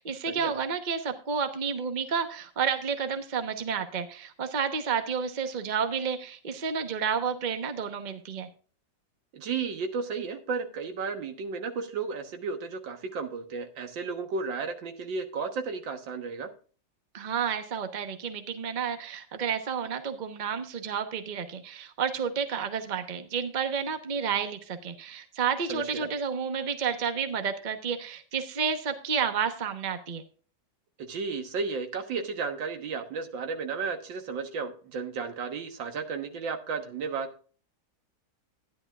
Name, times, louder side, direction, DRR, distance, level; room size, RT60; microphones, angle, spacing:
voice 1, 0.0-8.5 17.1-30.2, right 6 dB, 30° right, 7 dB, 0.9 m, -30 dB
voice 2, 9.3-16.5 25.7-26.1 31.1-37.3, right 5 dB, 80° right, 6 dB, 2.0 m, -33 dB
13.0 x 10.5 x 2.4 m, 0.40 s
omnidirectional pair, 2.0 m